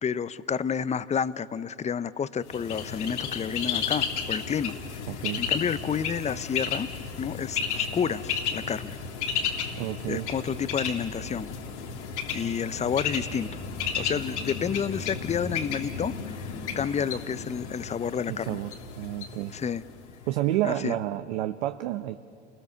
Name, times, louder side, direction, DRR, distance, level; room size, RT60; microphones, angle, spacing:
voice 1, 0.0-4.8 5.4-6.9 7.2-9.0 10.1-11.5 12.3-13.5 13.9-16.5 16.8-18.6 19.5-19.8 20.6-21.0, left 7 dB, 20° left, 16 dB, 0.7 m, -30 dB
Bird, 2.5-20.2, left 6 dB, 80° left, 3.1 m, -33 dB
voice 2, 5.1-5.4 9.8-10.3 18.3-18.7 19.0-19.5 20.3-22.2, right 14 dB, 70° right, 9 dB, 1.0 m, -29 dB
29.0 x 21.5 x 6.8 m, 2.6 s
hypercardioid pair, 90°, 34 cm